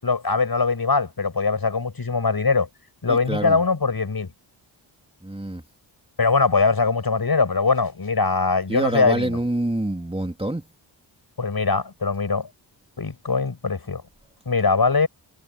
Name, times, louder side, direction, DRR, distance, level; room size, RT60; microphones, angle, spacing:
voice 1, 0.0-2.7 3.0-4.3 6.2-9.4 11.4-12.5 13.0-14.0 14.4-15.1, left 4 dB, 45° left, 6.9 m, -21 dB
voice 2, 3.1-3.6 5.2-5.6 8.7-10.7, right 1 dB, 10° right, 2.8 m, -26 dB
cardioid pair, 50°, 49 cm